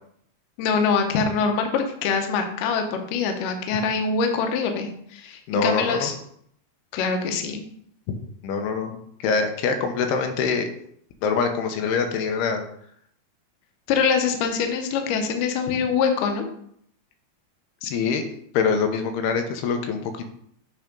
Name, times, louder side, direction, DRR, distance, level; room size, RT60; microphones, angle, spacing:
voice 1, 0.6-6.1 6.9-7.6 13.9-16.4, left 5 dB, 70° left, 5 dB, 2.2 m, -24 dB
voice 2, 5.5-6.1 8.4-8.9 9.2-10.7 11.2-12.6 17.8-18.2 18.5-20.0, left 5 dB, 90° left, 6 dB, 2.8 m, -24 dB
8.7 x 3.4 x 5.2 m, 0.67 s
omnidirectional pair, 4.5 m